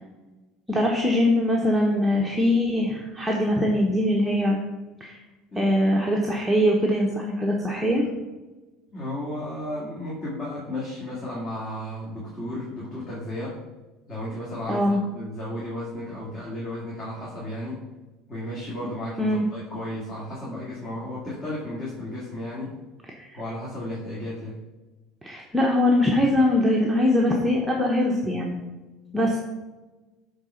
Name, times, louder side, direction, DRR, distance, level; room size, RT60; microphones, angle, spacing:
voice 1, 0.7-4.6 5.0-5.2 5.5-8.0 14.7-15.0 19.2-19.5 23.2-23.4 25.2-28.6 29.1-29.4, left 1 dB, 5° right, -2 dB, 1.0 m, -22 dB
voice 2, 8.9-13.6 14.1-17.8 18.3-22.7 23.3-24.6, left 1 dB, 25° left, -7 dB, 2.4 m, -34 dB
9.0 x 3.9 x 5.7 m, 1.2 s
cardioid pair, 125°, 0 cm